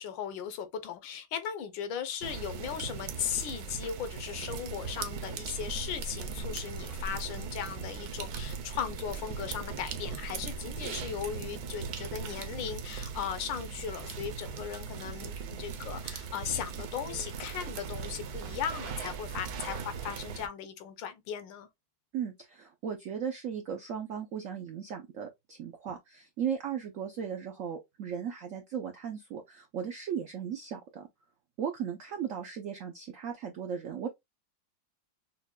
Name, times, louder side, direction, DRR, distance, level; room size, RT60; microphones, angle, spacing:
voice 1, 0.0-21.7, left 8 dB, 75° left, 1.4 m, -37 dB
sound 1, 2.2-20.5, right 6 dB, 65° right, 1.0 m, -39 dB
voice 2, 22.1-31.1 31.6-34.1, right 8 dB, 90° right, 0.7 m, -36 dB
5.7 x 2.2 x 2.2 m
omnidirectional pair, 2.1 m